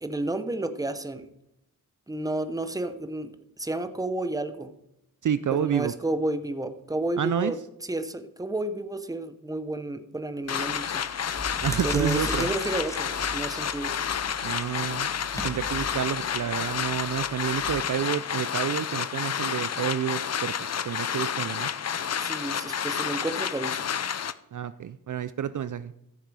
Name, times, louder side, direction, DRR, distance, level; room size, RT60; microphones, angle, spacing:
voice 1, 0.0-1.3 2.1-3.3 3.6-4.7 5.5-11.0 11.8-14.0 22.2-23.9, right 2 dB, 10° right, 9 dB, 0.8 m, -31 dB
voice 2, 5.2-5.9 7.2-7.5 11.6-12.5 14.4-20.5 20.8-21.7 24.5-25.9, right 9 dB, 55° right, 14 dB, 0.5 m, -29 dB
sound 1, 10.5-24.3, left 8 dB, 45° left, 0.5 m, -30 dB
sound 2, 10.7-10.8 11.2-17.7, equal, 10° left, 1.4 m, -38 dB
14.0 x 6.6 x 4.8 m, 0.84 s
wide cardioid pair, 125°, 36 cm